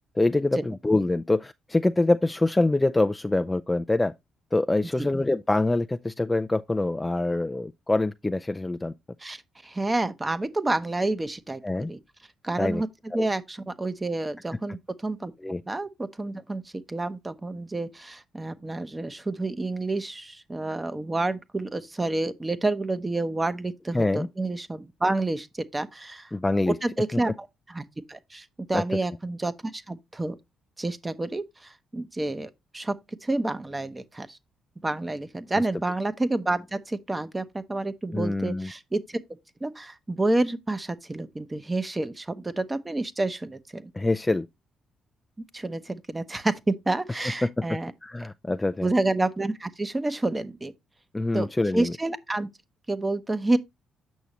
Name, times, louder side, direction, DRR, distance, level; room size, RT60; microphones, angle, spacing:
voice 1, 0.2-4.1 4.5-8.9 11.6-11.9 12.6-12.8 13.1-13.3 15.4-15.6 23.9-24.3 26.3-26.8 27.1-27.2 28.7-28.8 38.1-38.7 43.9-44.5 47.4-47.6 48.0-48.9 51.1-51.9, left 2 dB, 15° left, 0.3 m, -25 dB
voice 2, 9.2-11.6 11.9-12.0 12.4-12.9 13.1-15.3 15.7-25.5 25.7-26.3 26.7-27.3 27.7-30.4 30.8-34.4 34.8-39.2 39.6-43.9 45.4-47.9 48.8-50.7 51.3-52.5 52.9-53.6, right 2 dB, 20° right, 0.8 m, -29 dB
8.2 x 6.2 x 2.9 m
cardioid pair, 90°, 0 cm